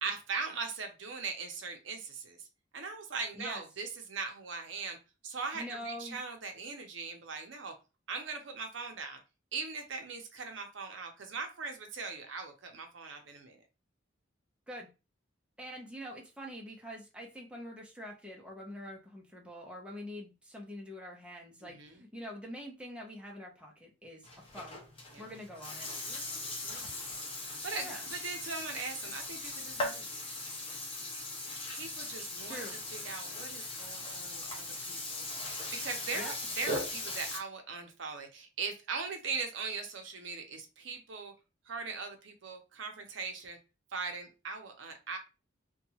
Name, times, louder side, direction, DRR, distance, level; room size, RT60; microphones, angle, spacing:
voice 1, 0.0-2.5 2.7-5.0 5.2-7.7 8.1-9.2 9.5-13.6 21.6-22.0 25.1-25.3 26.0-26.2 26.6-26.9 27.6-30.2 31.7-32.6 32.9-41.3 41.7-43.6 43.9-45.2, right 4 dB, 65° right, 4 dB, 0.6 m, -40 dB
voice 2, 5.5-6.2 14.7-14.9 15.6-24.2 24.5-24.8 25.2-25.9 27.7-28.0 32.4-32.8 36.1-36.3, equal, 5° right, -1 dB, 0.6 m, -45 dB
Burping eructation, 24.2-37.4, left 2 dB, 25° left, 0.9 m, -39 dB
2.8 x 2.3 x 2.7 m, 0.29 s
head